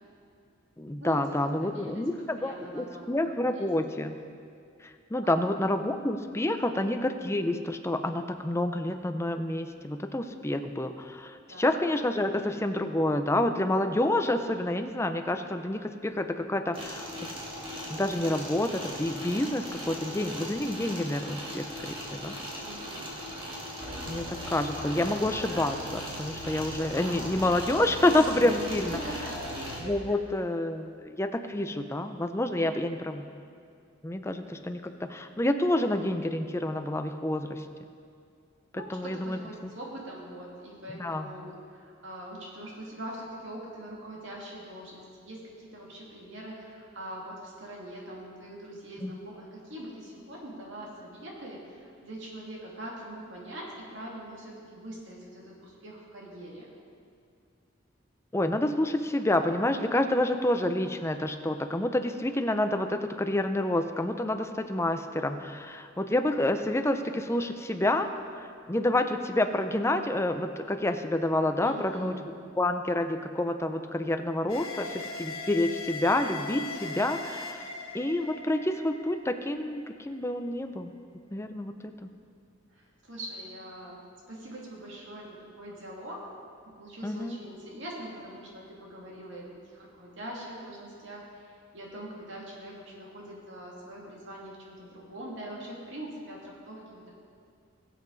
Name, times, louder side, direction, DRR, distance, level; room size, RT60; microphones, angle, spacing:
voice 1, 0.8-4.2 5.1-17.3 17.9-22.4 24.1-29.0 29.8-33.3 34.0-37.7 38.7-39.7 41.0-41.3 49.0-49.1 58.3-68.1 68.4-72.1 72.6-77.7 77.9-80.9 81.3-82.1 87.0-87.4, left 1 dB, 15° left, 7 dB, 0.5 m, -28 dB
voice 2, 1.6-2.0 2.4-3.7 5.2-5.6 6.7-6.9 11.5-11.7 22.6-23.1 28.7-29.4 30.1-30.2 32.5-32.8 38.7-56.7 71.6-72.1 82.7-86.3 86.7-97.1, right 1 dB, 60° right, -3 dB, 2.6 m, -43 dB
sound 1, 16.7-29.8, equal, 25° right, 1.9 m, -39 dB
sound 2, 23.8-29.9, equal, 85° right, 2.7 m, -41 dB
sound 3, 74.5-79.8, left 3 dB, 85° left, 1.5 m, -39 dB
20.5 x 7.5 x 4.0 m, 2.3 s
head